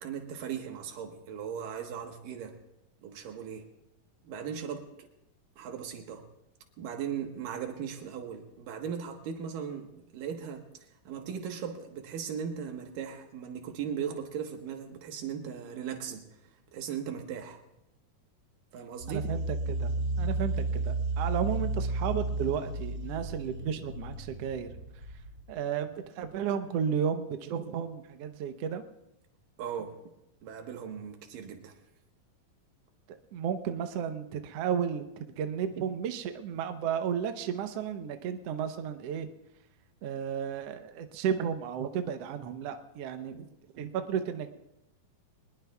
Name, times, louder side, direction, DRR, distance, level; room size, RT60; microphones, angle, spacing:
voice 1, 0.0-2.6 3.0-3.7 4.2-4.8 5.6-6.3 6.8-10.6 11.1-17.6 18.7-19.3 29.6-30.0 30.4-31.8, right 8 dB, 90° right, 4 dB, 3.1 m, -38 dB
sound 1, 19.0-25.5, right 2 dB, 30° right, 8.6 m, -33 dB
voice 2, 19.1-19.9 20.2-24.7 25.5-28.8 33.1-39.3 40.0-43.5 43.7-44.5, right 8 dB, 70° right, 7 dB, 1.6 m, -33 dB
23.5 x 20.0 x 2.4 m, 0.86 s
omnidirectional pair, 3.8 m